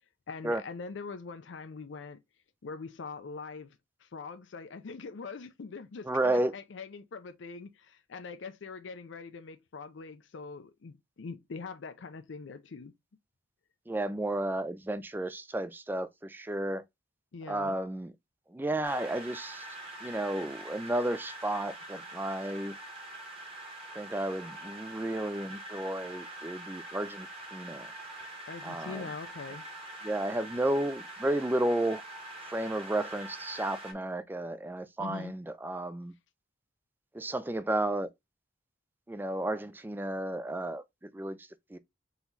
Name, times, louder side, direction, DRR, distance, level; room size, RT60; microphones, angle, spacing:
voice 1, 0.3-2.2 2.6-12.9 17.3-17.8 28.2-29.6 35.0-35.4, left 4 dB, 70° left, 0.5 m, -43 dB
voice 2, 6.1-6.5 13.9-16.8 17.5-18.1 18.5-19.7 20.0-22.8 23.9-27.9 28.6-29.1 30.0-32.0 32.5-36.1 37.1-38.1 39.1-41.8, right 1 dB, 10° right, 0.3 m, -32 dB
sound 1, 18.8-33.9, right 1 dB, 30° right, 1.4 m, -44 dB
4.0 x 3.0 x 3.9 m
head